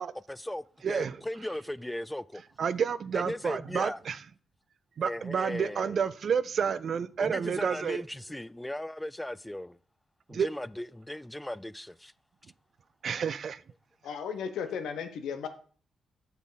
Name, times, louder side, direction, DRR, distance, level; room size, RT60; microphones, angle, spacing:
voice 1, 0.3-2.4 3.1-4.0 5.0-6.0 7.2-9.8 10.3-12.1, left 1 dB, 10° left, 0.3 m, -37 dB
voice 2, 0.8-1.2 2.6-4.2 5.0-8.0 10.3-10.5 13.0-13.6, right 7 dB, 60° right, 0.4 m, -30 dB
voice 3, 14.0-15.5, left 7 dB, 75° left, 0.9 m, -35 dB
7.3 x 7.0 x 4.0 m
hypercardioid pair, 40°, 0 cm